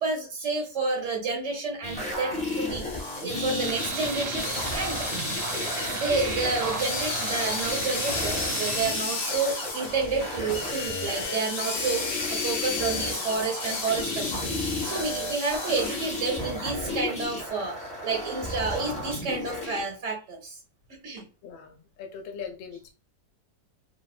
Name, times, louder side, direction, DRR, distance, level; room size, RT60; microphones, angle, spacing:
voice 1, 0.0-5.1 5.9-20.6 21.0-21.2, right 4 dB, 60° right, 0 dB, 0.8 m, -30 dB
sound 1, 1.8-19.8 21.2-21.3, left 1 dB, 10° left, 0.5 m, -34 dB
sound 2, 2.5-16.4, left 4 dB, 55° left, 1.0 m, -34 dB
Tools, 3.6-9.0, right 5 dB, 75° right, 1.2 m, -35 dB
voice 2, 21.4-22.9, left 6 dB, 85° left, 4 dB, 1.3 m, -40 dB
3.3 x 2.0 x 2.4 m, 0.35 s
omnidirectional pair, 2.0 m